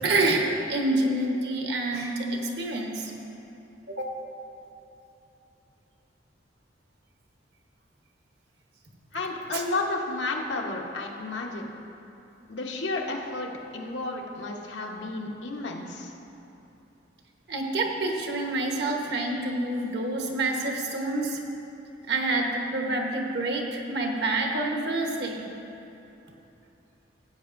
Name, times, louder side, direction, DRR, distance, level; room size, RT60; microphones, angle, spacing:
voice 1, 0.0-3.1 3.9-4.1 9.5-9.6 17.5-21.4 22.1-25.5, right 2 dB, 65° right, 1 dB, 1.1 m, -27 dB
voice 2, 9.1-11.7 12.5-16.1, left 2 dB, 80° left, 0 dB, 1.0 m, -32 dB
15.5 x 8.1 x 2.6 m, 2.9 s
head